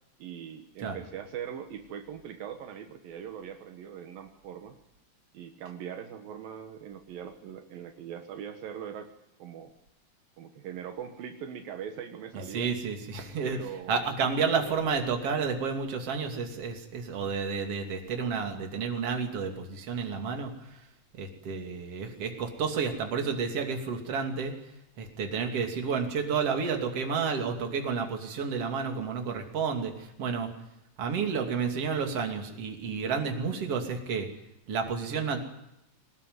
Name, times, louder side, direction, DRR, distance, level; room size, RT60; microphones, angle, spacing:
voice 1, 0.2-4.8 5.3-9.1 9.4-9.7 10.4-12.7 13.4-14.8, right 8 dB, 75° right, 6 dB, 3.1 m, -41 dB
voice 2, 12.3-20.8 21.1-24.6 25.0-30.5 31.0-34.3 34.7-35.4, right 5 dB, 45° right, 4 dB, 3.5 m, -31 dB
22.5 x 18.5 x 9.6 m, 0.83 s
omnidirectional pair, 4.1 m